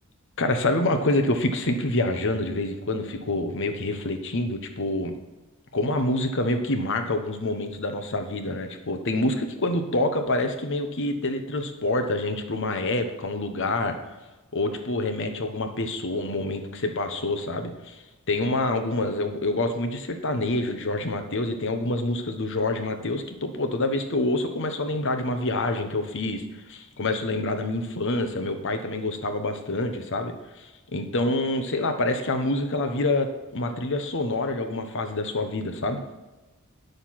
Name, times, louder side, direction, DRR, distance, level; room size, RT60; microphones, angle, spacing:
voice 1, 0.4-5.1 5.7-14.0 14.5-18.0 18.3-26.4 26.7-36.0, left 2 dB, 55° left, 7 dB, 1.1 m, -27 dB
9.4 x 6.7 x 5.9 m, 1.1 s
head